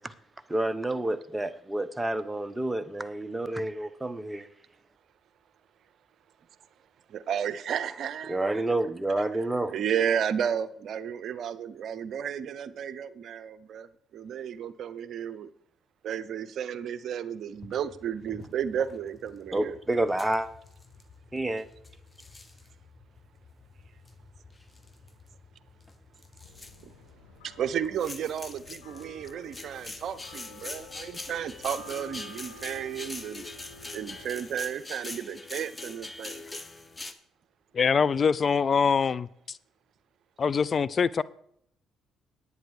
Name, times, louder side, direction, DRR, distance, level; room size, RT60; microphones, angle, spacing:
voice 1, 0.5-4.4 8.3-9.7 19.5-20.5 21.3-21.6, right 1 dB, 15° right, 12 dB, 1.0 m, -29 dB
voice 2, 7.1-8.8 9.2-15.5 16.0-19.8 26.8-26.9 27.4-33.4 33.9-36.4, right 8 dB, 60° right, 15 dB, 0.7 m, -33 dB
sound 1, 17.5-37.1, left 2 dB, 20° left, 1.3 m, -45 dB
sound 2, 26.4-34.4, left 2 dB, 90° left, 3.1 m, -50 dB
voice 3, 37.7-39.6 40.4-41.2, left 6 dB, 45° left, 19 dB, 0.5 m, -24 dB
10.5 x 9.4 x 4.8 m, 0.69 s
hypercardioid pair, 55°, 0 cm